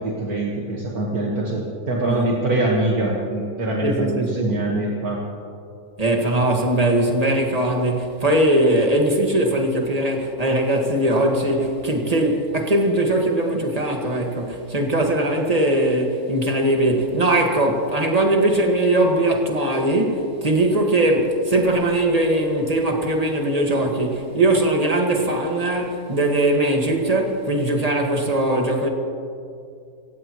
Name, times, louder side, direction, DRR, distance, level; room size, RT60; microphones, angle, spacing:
voice 1, 0.0-5.2, right 2 dB, 70° right, 2.1 m, -24 dB
voice 2, 3.8-4.5 6.0-28.9, right 1 dB, 25° right, 1.9 m, -20 dB
27.5 x 16.0 x 3.1 m
omnidirectional pair, 1.7 m